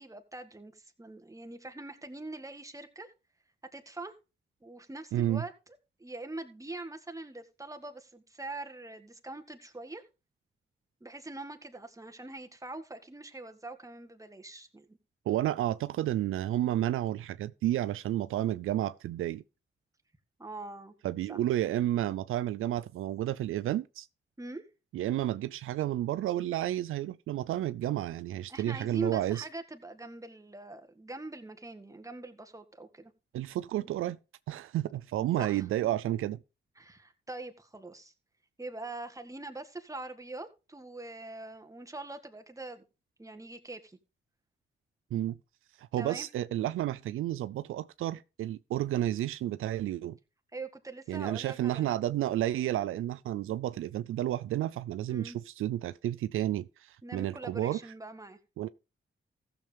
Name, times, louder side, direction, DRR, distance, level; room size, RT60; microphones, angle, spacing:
voice 1, 0.0-3.1 3.7-4.1 4.6-5.5 6.0-10.0 11.0-15.0 20.4-20.9 21.3-21.4 24.4-24.6 28.5-33.1 33.8-33.9 35.4-35.9 36.8-38.1 38.6-42.8 43.2-44.0 46.0-46.3 50.5-52.0 55.1-55.4 57.0-58.4, right 2 dB, 15° right, 1.7 m, -43 dB
voice 2, 5.1-5.4 15.3-19.4 21.0-24.1 24.9-29.5 33.3-34.2 34.5-36.4 45.1-45.4 45.8-50.2 51.1-57.8 58.6-58.7, right 13 dB, 85° right, 0.4 m, -31 dB
15.0 x 7.0 x 3.4 m
cardioid pair, 50°, 21 cm